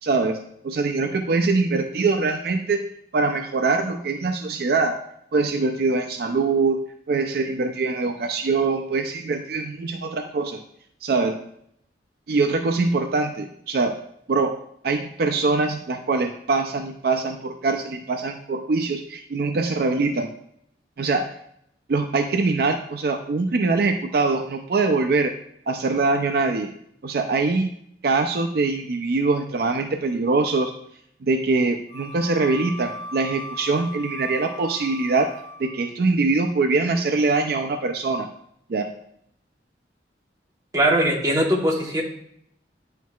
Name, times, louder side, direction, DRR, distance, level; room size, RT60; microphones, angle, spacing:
voice 1, 0.0-2.8 3.1-5.0 5.3-6.8 7.1-10.6 11.0-11.4 12.3-14.0 14.3-14.6 14.8-20.3 21.0-21.4 21.9-25.3 25.7-26.7 27.0-27.7 28.0-30.7 31.2-35.3 35.6-38.3 38.7-38.9, right 3 dB, 55° right, 5 dB, 0.4 m, -23 dB
Wind instrument woodwind instrument, 31.9-35.9, left 2 dB, 65° left, 1.7 m, -38 dB
voice 2, 40.7-42.0, right 1 dB, 20° right, -2 dB, 1.1 m, -20 dB
9.1 x 4.5 x 2.3 m, 0.70 s
head